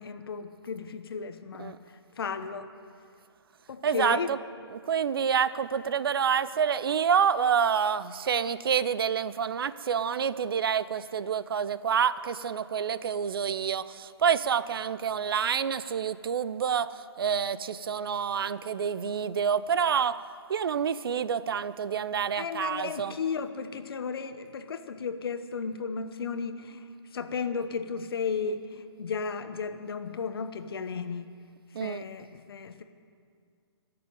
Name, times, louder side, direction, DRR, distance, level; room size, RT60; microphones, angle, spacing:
voice 1, 0.0-1.8 2.2-2.7 3.7-4.3 22.3-31.3 31.8-32.8, left 5 dB, 60° left, 9 dB, 1.1 m, -34 dB
voice 2, 3.8-4.4 4.7-20.2 20.5-23.1 31.7-32.0, right 7 dB, 55° right, 16 dB, 0.5 m, -28 dB
17.5 x 6.9 x 9.4 m, 2.2 s
figure-of-eight pair, 140°, 14 cm